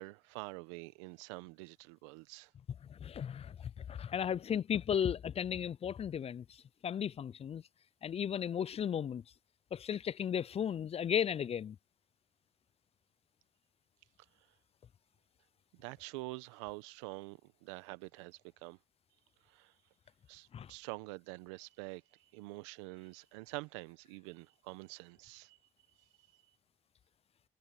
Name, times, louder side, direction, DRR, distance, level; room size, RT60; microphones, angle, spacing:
voice 1, 0.0-2.5 15.7-18.8 19.5-19.7 20.3-22.0 22.3-25.6, right 23 dB, 85° right, 1.1 m, -46 dB
voice 2, 2.9-3.6 3.9-6.4 6.8-7.6 8.0-9.2 9.7-11.8 20.5-20.7, left 8 dB, 40° left, 0.5 m, -35 dB
hypercardioid pair, 50°, 15 cm